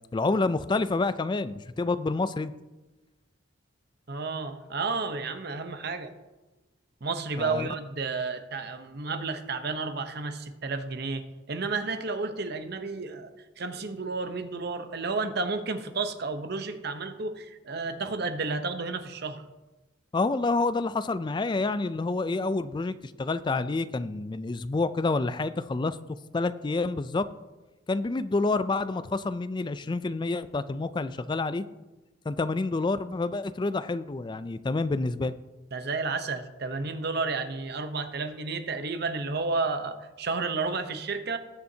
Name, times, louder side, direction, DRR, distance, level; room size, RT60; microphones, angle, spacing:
voice 1, 0.1-2.5 7.4-7.7 20.1-26.0 26.3-27.3 27.9-31.6 32.3-35.3, left 3 dB, 25° left, 13 dB, 0.3 m, -28 dB
voice 2, 4.1-6.1 7.0-19.4 35.7-41.4, right 4 dB, 55° right, 8 dB, 0.8 m, -32 dB
19.5 x 7.0 x 2.8 m, 1.1 s
head